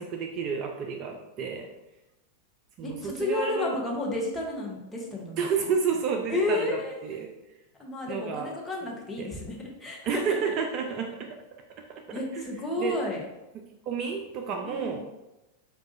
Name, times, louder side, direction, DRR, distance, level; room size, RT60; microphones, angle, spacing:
voice 1, 0.0-1.7 2.8-3.8 5.4-7.3 8.1-8.5 9.2-9.3 10.1-11.6 11.9-12.0 12.4-12.5 12.8-13.0 13.9-15.0, right 6 dB, 40° right, 3 dB, 0.3 m, -30 dB
voice 2, 2.8-5.4 6.3-7.0 7.8-10.6 12.1-13.3 14.6-15.0, left 2 dB, 10° left, -3 dB, 0.8 m, -31 dB
4.6 x 2.4 x 2.6 m, 0.98 s
figure-of-eight pair, 90°, 0 cm